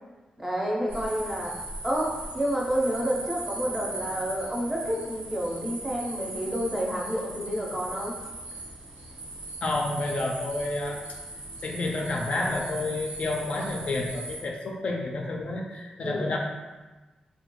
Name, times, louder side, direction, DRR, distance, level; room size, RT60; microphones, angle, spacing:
voice 1, 0.4-1.5 1.8-8.1 16.0-16.3, equal, 10° right, -3 dB, 0.6 m, -29 dB
sound 1, 0.9-14.4, right 2 dB, 80° right, 0.6 m, -39 dB
voice 2, 9.6-11.0 11.6-16.4, left 2 dB, 55° left, 0 dB, 0.4 m, -30 dB
3.2 x 2.2 x 3.0 m, 1.2 s
wide cardioid pair, 125°, 2 cm